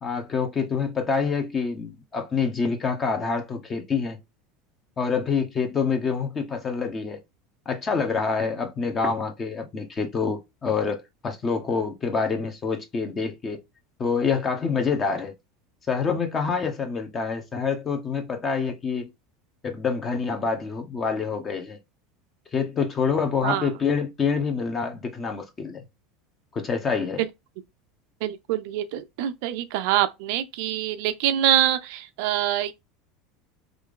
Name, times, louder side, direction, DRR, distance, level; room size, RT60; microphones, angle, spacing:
voice 1, 0.0-4.2 5.0-7.2 7.7-13.6 14.0-15.3 15.9-19.1 19.6-21.8 22.5-25.8 26.5-27.2, left 5 dB, 30° left, 1.1 m, -26 dB
voice 2, 28.2-32.7, right 12 dB, 70° right, 0.4 m, -25 dB
3.1 x 2.6 x 3.7 m
hypercardioid pair, 90°, 0 cm